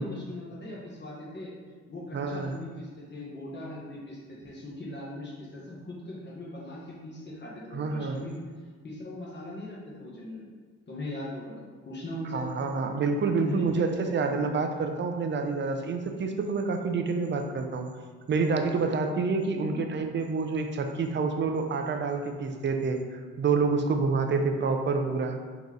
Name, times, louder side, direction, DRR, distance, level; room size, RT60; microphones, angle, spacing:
voice 1, 0.0-1.5 1.9-8.4 8.8-10.5 10.9-12.4 13.4-13.8 14.1-14.2 19.6-19.8, left 1 dB, 35° left, -6 dB, 1.1 m, -40 dB
voice 2, 2.1-2.5 7.7-8.2 12.3-17.9 18.3-25.4, right 4 dB, 40° right, 5 dB, 0.5 m, -28 dB
3.9 x 2.9 x 3.7 m, 1.5 s
cardioid pair, 90°, 30 cm